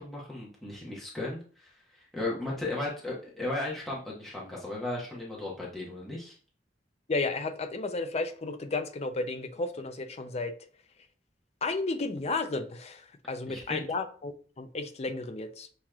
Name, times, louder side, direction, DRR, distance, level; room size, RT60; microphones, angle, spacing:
voice 1, 0.0-6.3 13.5-13.8, left 2 dB, ahead, -6 dB, 1.2 m, -36 dB
voice 2, 7.1-10.5 11.6-15.7, left 3 dB, 35° left, 8 dB, 0.6 m, -33 dB
7.1 x 3.0 x 2.4 m, 0.40 s
head